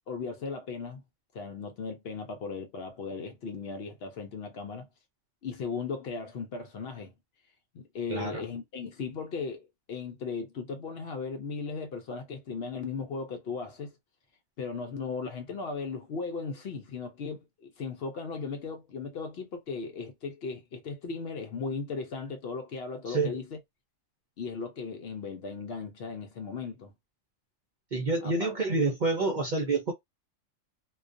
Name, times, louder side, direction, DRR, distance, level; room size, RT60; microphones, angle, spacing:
voice 1, 0.1-1.0 1.3-4.9 5.4-7.1 7.7-13.9 14.6-23.6 24.4-26.9 28.2-28.5, left 4 dB, 60° left, 0.7 m, -37 dB
voice 2, 8.1-8.4 23.1-23.4 27.9-29.9, right 3 dB, 55° right, 0.5 m, -28 dB
2.3 x 2.2 x 2.4 m
omnidirectional pair, 1.3 m